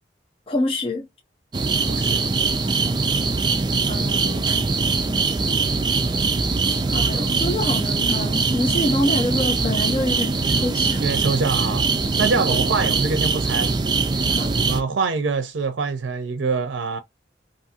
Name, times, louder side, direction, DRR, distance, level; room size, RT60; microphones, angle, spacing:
voice 1, 0.5-1.1 3.8-4.7 6.9-11.0 12.5-12.6 14.3-14.6, left 1 dB, 30° left, 0.6 m, -26 dB
sound 1, 1.5-14.8, right 4 dB, 25° right, 0.4 m, -22 dB
voice 2, 1.9-2.2 11.0-11.8 12.2-13.7 14.6-17.0, right 4 dB, 85° right, 0.5 m, -24 dB
2.7 x 2.5 x 2.7 m
head